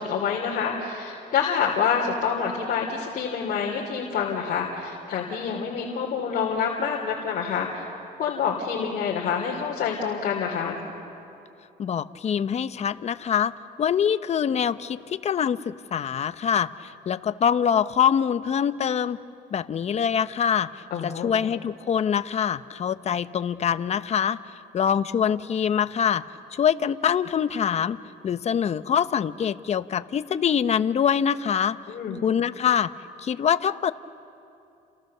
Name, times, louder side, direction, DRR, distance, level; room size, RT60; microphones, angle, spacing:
voice 1, 0.0-7.8 8.2-10.8 20.9-21.3 31.9-32.2, left 6 dB, 55° left, -2 dB, 3.1 m, -27 dB
voice 2, 11.8-13.5 13.8-19.2 19.5-24.4 24.7-26.2 26.5-28.0 28.2-31.8 32.2-32.9 33.2-33.9, left 8 dB, 40° left, 12 dB, 0.8 m, -24 dB
29.5 x 29.0 x 6.8 m, 2.7 s
cardioid pair, 110°, 17 cm